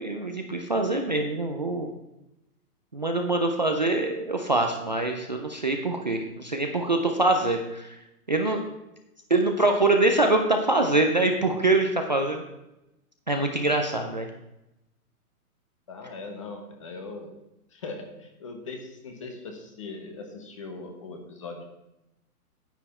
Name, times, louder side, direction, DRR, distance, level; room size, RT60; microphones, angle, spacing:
voice 1, 0.0-1.9 2.9-7.9 8.3-8.6 9.3-12.4 13.3-14.3, right 2 dB, 30° right, 3 dB, 0.5 m, -24 dB
voice 2, 15.9-17.3 17.7-21.6, left 3 dB, 20° left, 5 dB, 0.9 m, -40 dB
9.9 x 9.1 x 4.2 m, 0.91 s
hypercardioid pair, 175°, 46 cm